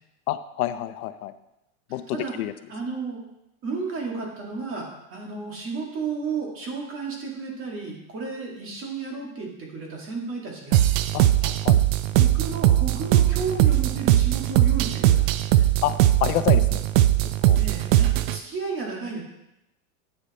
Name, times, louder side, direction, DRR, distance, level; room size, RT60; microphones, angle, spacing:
voice 1, 0.3-1.3 1.9-2.5 11.1-11.8 15.8-15.9 16.2-16.8 17.5-17.6, left 13 dB, 90° left, 12 dB, 0.8 m, -28 dB
voice 2, 2.7-3.2 3.6-10.8 12.1-15.6 17.6-19.2, right 4 dB, 30° right, -1 dB, 2.1 m, -33 dB
sound 1, 10.7-18.4, right 13 dB, 70° right, 0.6 m, -20 dB
9.0 x 6.6 x 4.2 m, 0.88 s
supercardioid pair, 150°, 42 cm